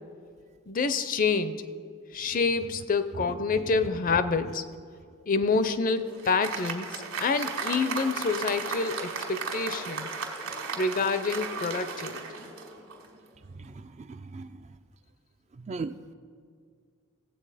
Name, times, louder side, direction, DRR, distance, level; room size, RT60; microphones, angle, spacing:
voice 1, 0.7-1.6 2.1-4.6 5.3-10.1 10.8-12.2, left 4 dB, 40° left, 11 dB, 0.5 m, -27 dB
Applause, 5.6-13.2, right 5 dB, 65° right, 1.8 m, -36 dB
voice 2, 13.6-14.5 15.6-16.0, right 4 dB, 30° right, 10 dB, 0.3 m, -38 dB
17.0 x 8.0 x 4.9 m, 2.1 s
head